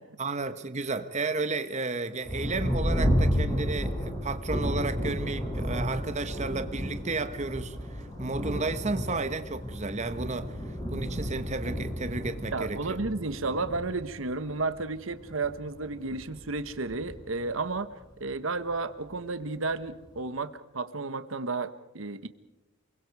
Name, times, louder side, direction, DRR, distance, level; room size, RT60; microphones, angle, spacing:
voice 1, 0.2-10.6 10.9-13.0, right 3 dB, 35° right, 1.2 m, -33 dB
Thunder, 2.2-18.3 19.1-19.2 19.7-20.2, equal, 20° left, 6.7 m, -32 dB
voice 2, 12.5-17.9 18.2-22.3, right 3 dB, 75° right, 1.1 m, -32 dB
29.0 x 22.5 x 4.7 m
head